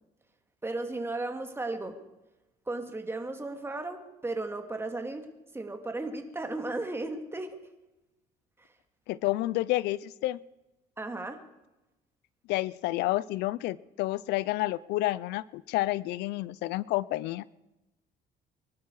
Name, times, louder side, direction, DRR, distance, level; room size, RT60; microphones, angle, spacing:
voice 1, 0.6-2.0 2.7-5.2 5.5-7.6 8.6-8.7 11.0-11.4, right 2 dB, 15° right, 5 dB, 2.3 m, -35 dB
voice 2, 9.1-10.4 12.5-17.4, left 17 dB, 85° left, 20 dB, 0.5 m, -30 dB
24.5 x 12.0 x 4.8 m, 1.0 s
cardioid pair, 110°, 17 cm